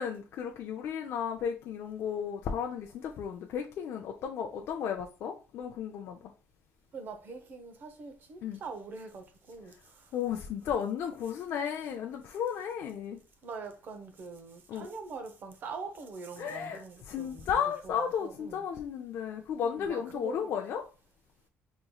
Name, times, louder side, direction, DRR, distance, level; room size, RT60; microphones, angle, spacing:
voice 1, 0.0-6.2 8.4-8.6 10.1-13.2 14.7-14.9 16.4-20.8, left 8 dB, 55° left, 0.5 m, -34 dB
voice 2, 6.9-10.1 13.4-17.4 17.8-18.6 19.6-20.5, right 4 dB, 40° right, 0.7 m, -43 dB
5.2 x 3.0 x 2.3 m
cardioid pair, 160°, 5 cm